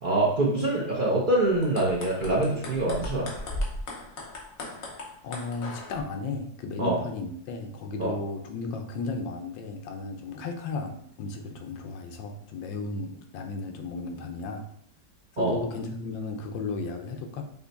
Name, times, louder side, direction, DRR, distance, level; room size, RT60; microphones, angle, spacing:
voice 1, 0.0-3.3 6.8-7.0 8.0-8.1 15.4-15.6, right 2 dB, 60° right, -4 dB, 0.5 m, -25 dB
sound 1, 1.5-6.0, left 1 dB, 55° left, 1.2 m, -37 dB
voice 2, 5.2-14.7 15.3-17.4, left 3 dB, 80° left, 4 dB, 1.4 m, -34 dB
5.7 x 2.2 x 4.0 m, 0.68 s
omnidirectional pair, 2.0 m